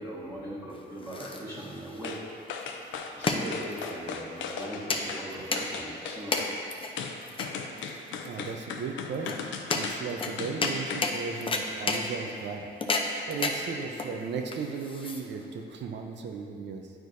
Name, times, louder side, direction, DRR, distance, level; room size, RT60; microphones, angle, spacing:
voice 1, 0.0-2.2 3.1-6.5, right 1 dB, 10° right, -11 dB, 1.6 m, -40 dB
sound 1, 0.7-15.6, left 3 dB, 25° left, 0.6 m, -33 dB
sound 2, 2.0-2.2 2.5-5.3 5.6-6.5 7.0-11.1 11.5-11.6, left 6 dB, 75° left, 0.6 m, -37 dB
voice 2, 8.2-16.9, right 5 dB, 60° right, 3 dB, 0.7 m, -36 dB
10.0 x 4.6 x 2.7 m, 2.5 s
cardioid pair, 90°, 20 cm